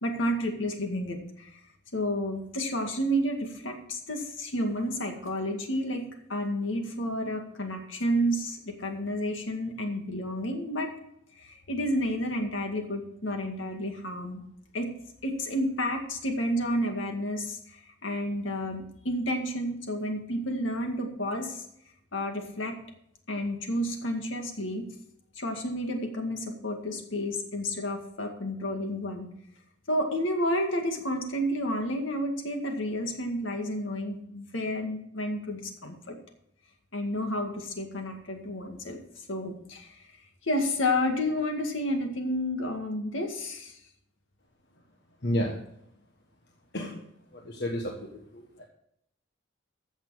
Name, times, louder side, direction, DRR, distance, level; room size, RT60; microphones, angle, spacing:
voice 1, 0.0-1.6 1.9-6.0 6.3-10.9 11.4-14.4 14.7-14.9 15.2-21.7 22.1-22.8 23.3-24.9 25.4-29.3 29.9-36.2 36.9-39.0 39.3-40.1 40.4-43.7, equal, 75° left, 4 dB, 2.0 m, -30 dB
voice 2, 45.2-45.6 46.7-47.1 47.3-48.6, equal, 60° left, 0 dB, 1.4 m, -32 dB
14.5 x 6.7 x 4.8 m, 0.75 s
head